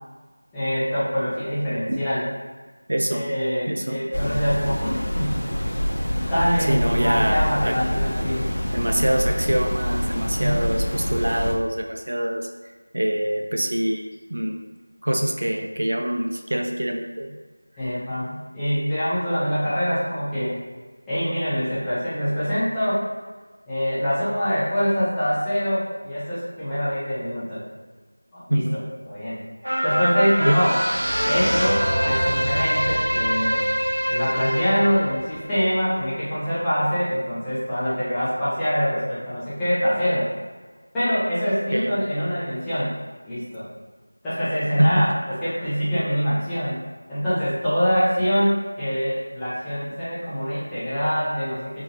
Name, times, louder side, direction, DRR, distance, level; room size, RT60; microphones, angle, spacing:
voice 1, 0.5-2.2 3.1-5.4 6.1-8.4 10.4-10.7 17.8-20.6 21.1-23.0 23.7-27.6 28.3-28.6 29.0-29.4 29.8-30.8 31.2-33.6 34.1-40.3 40.9-42.9 43.3-43.6 44.2-46.8 47.1-51.8, equal, 5° left, -15 dB, 0.7 m, -24 dB
voice 2, 2.9-3.3 3.7-4.0 6.7-7.8 8.7-12.5 12.9-14.0 14.3-14.6 15.0-17.4 28.5-28.8 30.4-30.6 41.7-41.9 44.8-45.1, right 1 dB, 60° right, 2 dB, 0.4 m, -24 dB
sound 1, 4.1-11.6, equal, 75° left, 0.8 m, -26 dB
sound 2, 29.6-36.3 36.7-36.8, equal, 85° right, 0.8 m, -24 dB
3.6 x 2.8 x 4.0 m, 1.4 s
figure-of-eight pair, 175°, 0 cm